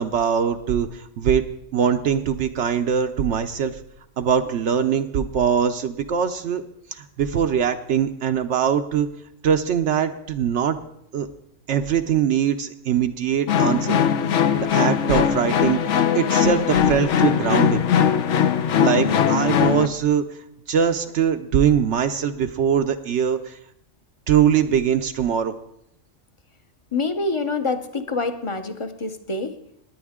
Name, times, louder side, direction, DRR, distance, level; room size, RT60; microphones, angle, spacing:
voice 1, 0.0-1.4 1.7-3.8 4.2-6.6 6.9-9.1 9.4-10.8 11.1-11.3 11.7-14.0 14.6-17.8 18.8-20.2 20.7-23.6 24.3-25.5, right 8 dB, 70° right, 7 dB, 0.9 m, -22 dB
sound 1, 13.5-19.9, left 8 dB, 70° left, 1.0 m, -20 dB
voice 2, 26.9-29.6, left 3 dB, 30° left, 8 dB, 0.7 m, -26 dB
19.5 x 9.2 x 3.6 m, 0.75 s
omnidirectional pair, 1.3 m